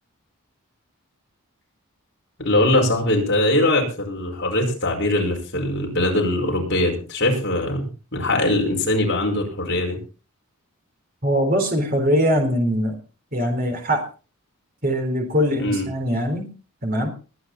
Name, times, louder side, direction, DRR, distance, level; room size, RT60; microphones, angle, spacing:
voice 1, 2.4-10.0 15.6-15.9, left 1 dB, 50° left, 1 dB, 5.2 m, -21 dB
voice 2, 11.2-13.0 13.3-14.1 14.8-16.5 16.8-17.1, equal, 40° right, 3 dB, 3.9 m, -22 dB
21.0 x 9.6 x 4.2 m, 0.34 s
head